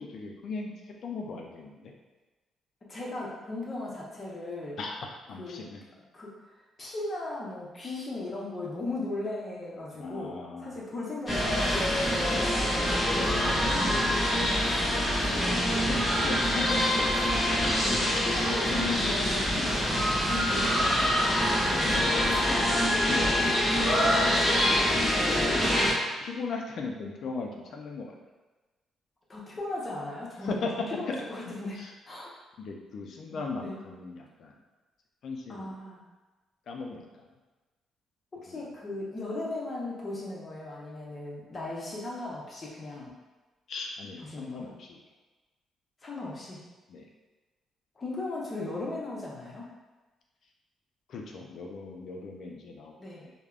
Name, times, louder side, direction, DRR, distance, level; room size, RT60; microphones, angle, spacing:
voice 1, 0.0-1.9 4.8-5.8 10.0-10.8 13.1-13.9 15.2-17.0 18.0-18.6 19.5-19.7 21.7-22.6 23.0-24.4 24.9-25.9 26.2-28.2 30.4-31.2 31.4-31.9 32.6-34.6 35.2-35.8 36.7-37.2 38.5-38.7 43.7-45.0 46.9-47.0 51.1-53.3, left 4 dB, 65° left, 0 dB, 0.4 m, -38 dB
voice 2, 2.9-4.8 5.4-5.6 6.1-6.3 6.8-10.3 10.6-12.5 13.1-14.6 15.3-15.7 17.0-17.4 18.4-21.1 21.6-22.4 25.1-25.5 29.3-30.6 31.0-32.3 33.3-33.8 35.5-36.0 38.4-43.1 44.3-44.7 46.0-46.6 48.0-49.7 53.0-53.2, left 2 dB, 35° left, -5 dB, 0.7 m, -37 dB
sound 1, 11.3-25.9, equal, 10° left, 1.1 m, -25 dB
3.3 x 2.1 x 2.4 m, 1.2 s
cardioid pair, 90°, 0 cm